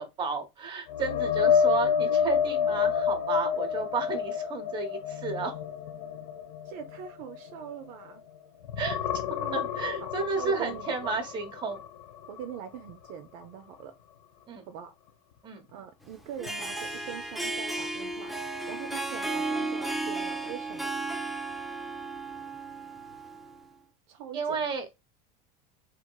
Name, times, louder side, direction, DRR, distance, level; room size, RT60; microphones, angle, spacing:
voice 1, 0.0-5.5 8.8-9.0 9.5-11.8 14.5-14.7 15.4-15.7 24.3-24.9, right 4 dB, 25° right, 0.9 m, -32 dB
sound 1, 0.9-8.3 8.6-12.5 12.9-13.1 16.5-16.6, left 7 dB, 80° left, 0.7 m, -29 dB
voice 2, 6.6-8.2 9.4-9.6 10.0-10.1 10.4-11.2 12.3-13.9 14.7-14.9 15.7-18.3 18.7-20.9 21.7-21.9 24.1-24.6, right 9 dB, 60° right, 0.5 m, -42 dB
Harp, 16.2-23.6, right 2 dB, ahead, 0.3 m, -34 dB
2.9 x 2.8 x 2.3 m
supercardioid pair, 150°, 20 cm